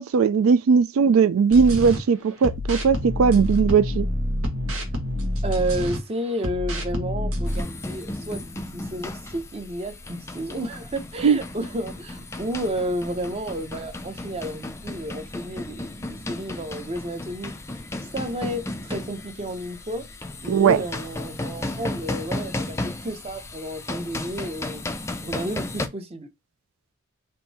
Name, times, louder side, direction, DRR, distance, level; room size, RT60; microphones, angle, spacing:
voice 1, 0.0-4.1 11.2-11.4 20.5-20.8, right 6 dB, 75° right, 0.3 m, -18 dB
sound 1, 1.5-2.0 2.4-6.0 6.4-7.6, equal, 90° right, 1.3 m, -27 dB
voice 2, 5.4-8.4 8.7-17.5 18.1-20.1 20.4-24.8 25.2-26.3, right 1 dB, 30° right, 0.7 m, -31 dB
sound 2, 7.5-25.9, left 2 dB, 15° left, 0.4 m, -34 dB
3.7 x 2.6 x 4.0 m
head